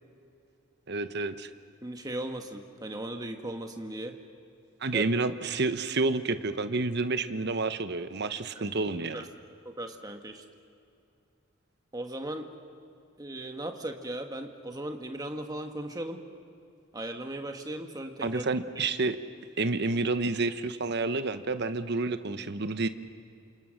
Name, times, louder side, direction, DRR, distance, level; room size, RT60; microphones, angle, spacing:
voice 1, 0.9-1.5 4.8-9.2 18.2-19.2 19.6-22.9, right 3 dB, 50° right, 10 dB, 1.0 m, -29 dB
voice 2, 1.8-4.1 4.9-5.0 8.5-8.7 9.1-9.2 9.6-10.4 11.9-12.5 13.2-16.2 16.9-18.5 18.7-18.9, right 1 dB, 15° right, 4 dB, 1.4 m, -37 dB
29.0 x 27.5 x 6.5 m, 2.6 s
head